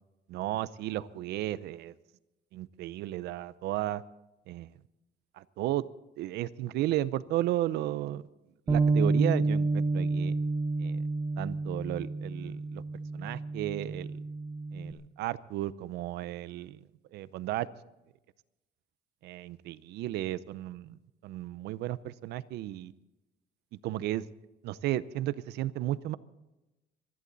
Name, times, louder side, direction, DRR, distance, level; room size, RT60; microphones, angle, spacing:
voice 1, 0.3-1.9 2.5-4.0 4.5-4.7 5.4-5.8 6.2-8.2 8.7-10.4 10.8-11.0 11.4-12.8 13.1-14.2 14.7-16.8 17.1-17.7 19.2-21.0 21.2-22.9 23.8-24.2 24.6-26.2, right 14 dB, 80° right, 17 dB, 0.7 m, -34 dB
Bass guitar, 8.7-14.9, right 3 dB, 25° right, 1.2 m, -29 dB
25.5 x 11.0 x 4.0 m, 0.99 s
cardioid pair, 110°, 17 cm